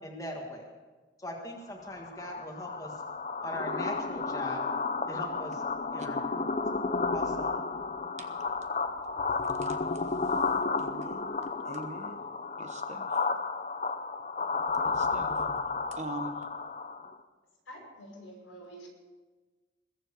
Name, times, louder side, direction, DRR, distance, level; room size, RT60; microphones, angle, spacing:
voice 1, 0.0-0.6 1.2-2.9 3.4-4.6 5.1-5.7 5.9-6.4 7.1-7.6, left 1 dB, 15° left, 0 dB, 1.7 m, -40 dB
sound 1, 1.8-17.1, left 4 dB, 35° left, 0.7 m, -32 dB
voice 2, 10.8-11.3 11.7-12.1 12.6-13.1 14.8-15.3 15.9-16.4, right 2 dB, 35° right, 6 dB, 1.2 m, -42 dB
voice 3, 17.7-18.9, right 1 dB, 90° left, 0 dB, 5.9 m, -47 dB
21.0 x 7.6 x 6.9 m, 1.3 s
head